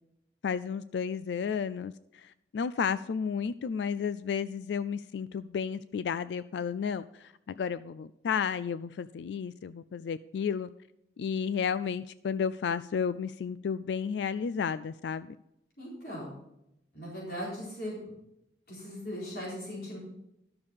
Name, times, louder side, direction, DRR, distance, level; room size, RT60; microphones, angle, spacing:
voice 1, 0.4-10.7 11.2-15.3, left 6 dB, 80° left, 15 dB, 0.3 m, -32 dB
voice 2, 15.8-16.4 16.9-18.0 18.7-20.0, equal, 60° left, -5 dB, 4.1 m, -38 dB
11.5 x 6.8 x 5.4 m, 0.84 s
head